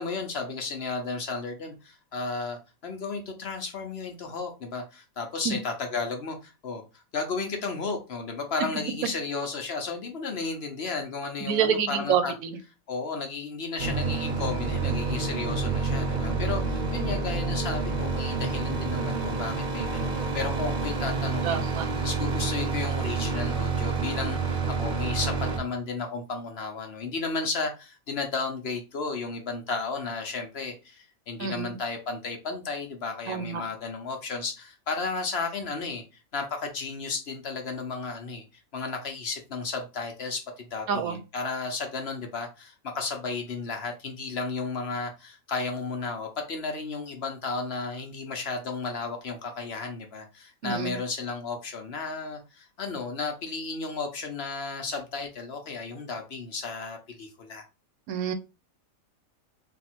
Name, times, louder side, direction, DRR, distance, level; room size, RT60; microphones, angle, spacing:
voice 1, 0.0-12.3 12.9-36.0 36.3-38.4 38.7-57.6, left 4 dB, 55° left, 0.9 m, -33 dB
voice 2, 11.5-12.6 21.4-21.8 31.4-31.7 33.3-33.6 40.9-41.2 50.6-51.0 58.1-58.3, right 7 dB, 90° right, 1.1 m, -27 dB
sound 1, 13.8-25.6, right 4 dB, 45° right, 0.8 m, -28 dB
3.5 x 2.4 x 4.3 m
omnidirectional pair, 1.5 m